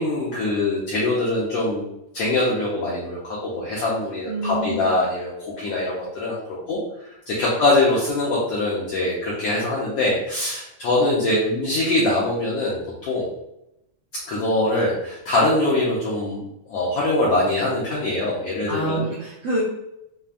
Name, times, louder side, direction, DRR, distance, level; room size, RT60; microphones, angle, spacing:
voice 1, 0.0-1.9 2.1-6.8 7.3-12.8 13.0-13.3 14.3-19.1, left 2 dB, 75° left, -7 dB, 1.4 m, -23 dB
voice 2, 4.3-4.9 18.7-19.6, right 2 dB, 70° right, -7 dB, 1.6 m, -27 dB
6.8 x 2.3 x 2.5 m, 0.85 s
omnidirectional pair, 3.8 m